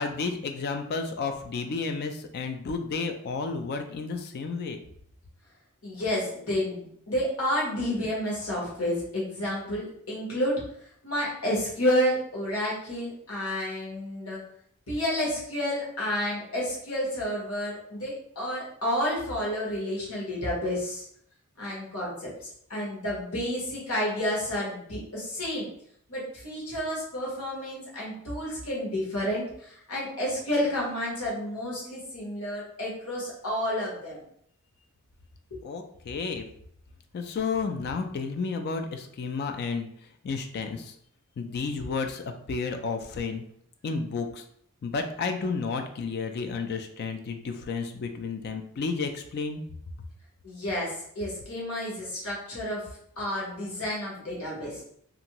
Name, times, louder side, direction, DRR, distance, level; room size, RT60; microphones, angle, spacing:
voice 1, 0.0-4.8 35.6-36.5 37.1-39.9 40.2-40.9 41.4-43.4 43.8-44.4 44.8-49.6, left 4 dB, 45° left, 6 dB, 0.3 m, -32 dB
voice 2, 5.8-10.6 11.0-14.4 14.9-21.0 21.6-25.7 26.1-34.2 35.5-35.6 50.4-52.9 53.2-54.8, equal, 75° left, -5 dB, 1.1 m, -30 dB
2.6 x 2.5 x 2.9 m, 0.68 s
head